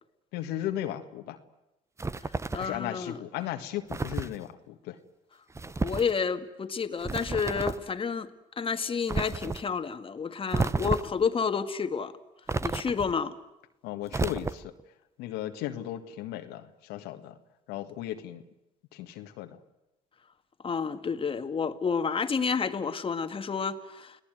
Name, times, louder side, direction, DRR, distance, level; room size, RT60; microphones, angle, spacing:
voice 1, 0.3-1.4 2.5-5.0 13.8-14.7 15.2-17.4 17.7-18.4 18.9-19.6, left 12 dB, 85° left, 6 dB, 1.8 m, -36 dB
sound 1, 2.0-2.8 3.9-4.4 5.5-6.1 7.0-7.9 9.1-9.6 10.5-11.2 12.5-13.2 14.1-14.8, right 3 dB, 15° right, 0.9 m, -31 dB
voice 2, 2.5-3.2 5.8-8.3 8.6-12.1 12.6-13.3 20.6-24.2, left 5 dB, 35° left, 9 dB, 1.9 m, -30 dB
30.0 x 18.0 x 9.3 m, 0.94 s
supercardioid pair, 85°, 16 cm